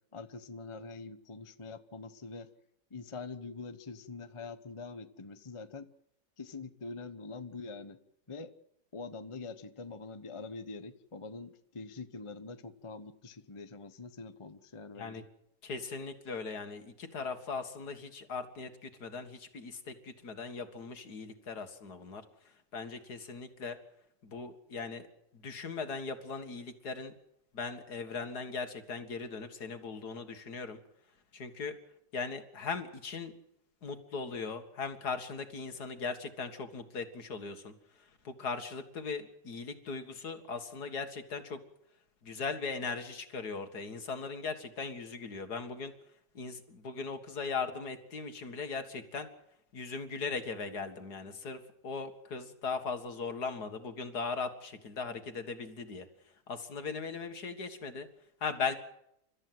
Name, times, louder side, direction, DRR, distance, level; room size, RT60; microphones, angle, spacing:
voice 1, 0.1-2.5 2.9-5.9 6.4-8.0 8.3-8.5 8.9-15.2, left 4 dB, 20° left, 10 dB, 0.9 m, -44 dB
voice 2, 15.6-22.2 22.7-23.8 24.2-25.1 25.4-27.1 27.5-30.8 31.3-31.7 32.1-33.3 33.8-37.7 38.2-41.6 42.2-45.9 46.3-49.3 49.7-56.1 56.5-58.1 58.4-58.8, left 4 dB, 65° left, 8 dB, 2.4 m, -39 dB
29.5 x 13.5 x 7.8 m, 0.78 s
omnidirectional pair, 1.9 m